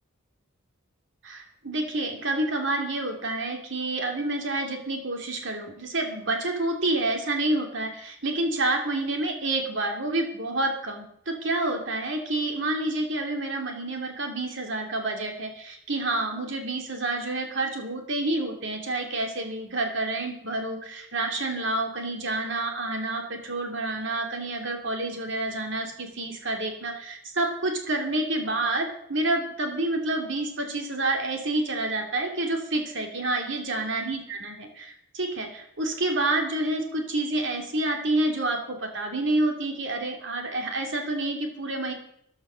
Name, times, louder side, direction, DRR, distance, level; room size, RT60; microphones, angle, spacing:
voice 1, 1.2-41.9, right 2 dB, 55° right, 3 dB, 2.9 m, -28 dB
14.5 x 11.5 x 6.4 m, 0.70 s
head